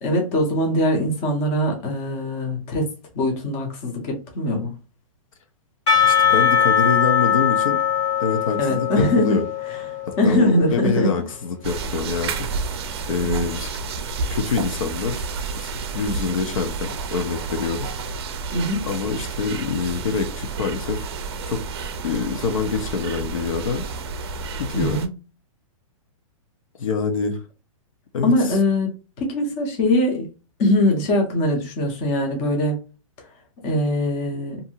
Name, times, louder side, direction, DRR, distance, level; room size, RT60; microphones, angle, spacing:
voice 1, 0.0-2.9 3.1-4.8 8.6-9.4 10.2-11.1 13.2-13.5 18.5-18.8 24.7-25.1 28.2-28.9 29.2-30.3 30.6-32.8 33.6-34.6, left 1 dB, 20° left, 0.6 m, -21 dB
Percussion / Church bell, 5.9-10.9, left 8 dB, 55° left, 1.3 m, -21 dB
voice 2, 6.0-7.8 8.2-9.4 10.1-12.6 13.1-13.7 14.3-15.3 15.6-17.9 18.9-21.0 21.5-21.6 22.0-23.8 24.6-25.0 26.8-27.4 28.1-28.3, left 5 dB, 70° left, 0.8 m, -25 dB
sound 1, 11.6-25.1, right 4 dB, 50° right, 0.5 m, -30 dB
2.7 x 2.6 x 2.7 m
hypercardioid pair, 170°, 18 cm